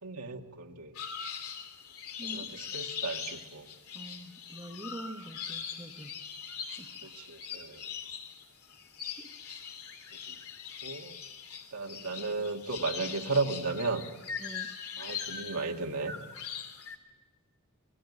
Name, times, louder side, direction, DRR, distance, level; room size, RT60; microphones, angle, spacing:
voice 1, 0.0-0.9 2.2-3.7 7.0-7.9 10.3-10.4 10.8-11.2 11.7-14.0 14.6-16.2, right 3 dB, 85° right, 2 dB, 2.1 m, -35 dB
sound 1, 1.0-17.0, left 7 dB, 75° left, 3.0 m, -41 dB
voice 2, 2.2-2.5 3.9-6.1 6.8-7.1 9.2-9.3 14.4-14.7, right 1 dB, 15° right, 4 dB, 1.3 m, -45 dB
26.5 x 19.0 x 9.9 m, 1.2 s
head